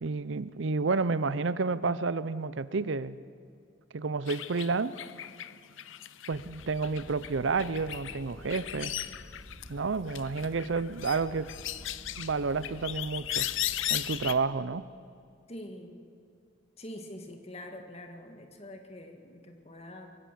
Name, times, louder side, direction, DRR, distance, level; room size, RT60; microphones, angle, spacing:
voice 1, 0.0-3.2 3.9-5.0 6.3-8.9 9.7-11.5 12.2-13.5 13.9-14.8, right 4 dB, 70° right, 16 dB, 0.6 m, -30 dB
sound 1, 4.3-9.8 10.1-14.3, left 13 dB, 75° left, 0.7 m, -37 dB
sound 2, 6.3-14.3, equal, 5° left, 7.9 m, -50 dB
voice 2, 15.5-16.1 16.8-20.1, left 1 dB, 30° left, 4 dB, 1.9 m, -45 dB
23.5 x 15.5 x 7.5 m, 2.3 s
head